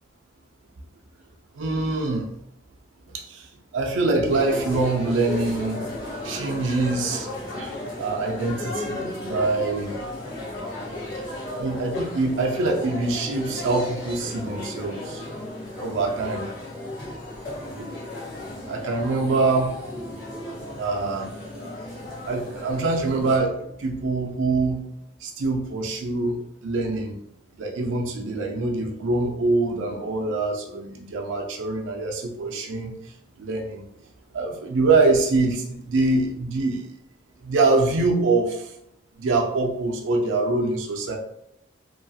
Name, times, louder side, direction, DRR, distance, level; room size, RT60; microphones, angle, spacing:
voice 1, 1.6-2.3 3.1-3.5 3.7-5.8 6.2-7.3 7.6-9.9 11.5-15.2 15.8-16.4 17.6-17.9 18.7-19.8 20.8-21.3 22.3-24.8 25.2-27.1 27.6-32.9 33.4-33.8 34.3-36.8 37.4-38.6 39.2-41.2, right 3 dB, 85° right, 1 dB, 0.4 m, -24 dB
sound 1, 4.2-23.4, left 1 dB, 75° left, 1.2 m, -34 dB
2.8 x 2.3 x 2.6 m, 0.77 s
head